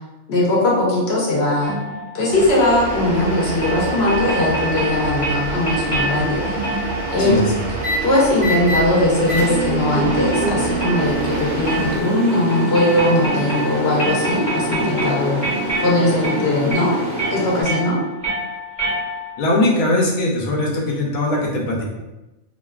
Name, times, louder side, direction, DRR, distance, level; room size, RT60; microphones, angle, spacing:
voice 1, 0.3-1.8 2.1-7.5 8.0-15.4 15.8-17.0 17.3-18.0, left 1 dB, 60° left, -4 dB, 0.8 m, -19 dB
sound 1, 1.6-19.5, right 1 dB, 15° left, 1.1 m, -28 dB
sound 2, 2.3-12.0, right 3 dB, 60° right, 0.7 m, -28 dB
voice 2, 7.2-7.6 19.4-21.8, left 2 dB, 90° left, -2 dB, 1.1 m, -20 dB
sound 3, 7.8-8.0 8.4-8.8 9.3-17.6, right 1 dB, 15° right, 0.7 m, -26 dB
2.6 x 2.2 x 2.2 m, 1.0 s
omnidirectional pair, 1.4 m